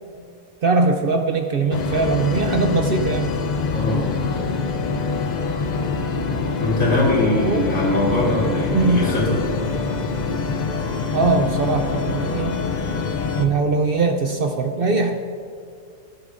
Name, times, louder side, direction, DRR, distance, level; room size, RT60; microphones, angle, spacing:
voice 1, 0.6-3.3 7.4-7.7 8.7-9.1 11.1-12.6 13.4-15.1, right 3 dB, 55° right, 5 dB, 0.7 m, -21 dB
sound 1, 1.7-13.5, left 4 dB, 45° left, 0.6 m, -25 dB
voice 2, 3.7-4.1 6.6-9.3, left 1 dB, 80° left, -5 dB, 3.2 m, -21 dB
18.0 x 7.7 x 2.5 m, 2.4 s
omnidirectional pair, 1.4 m